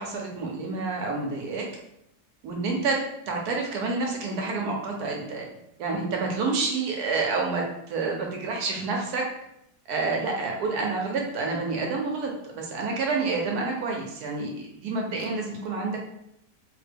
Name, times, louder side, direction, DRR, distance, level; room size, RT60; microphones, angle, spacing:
voice 1, 0.0-1.7 2.4-3.0 3.3-5.5 5.8-9.3 9.9-16.0, right 3 dB, 70° right, 0 dB, 1.1 m, -28 dB
3.3 x 2.2 x 3.3 m, 0.78 s
omnidirectional pair, 1.8 m